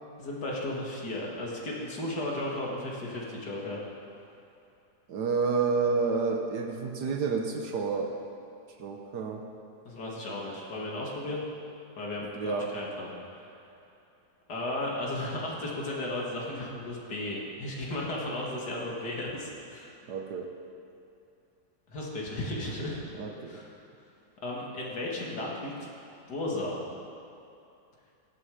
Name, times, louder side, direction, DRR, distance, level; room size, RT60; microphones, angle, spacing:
voice 1, 0.2-3.8 9.8-11.4 12.0-13.1 14.5-20.0 21.9-23.0 23.5-23.7 24.4-25.7 26.3-26.8, left 1 dB, 80° left, -3 dB, 2.6 m, -34 dB
voice 2, 5.1-8.1 8.8-9.4 12.3-12.7 20.1-20.5 23.2-23.6, right 4 dB, 80° right, 2 dB, 1.6 m, -29 dB
17.0 x 13.0 x 5.0 m, 2.6 s
omnidirectional pair, 1.7 m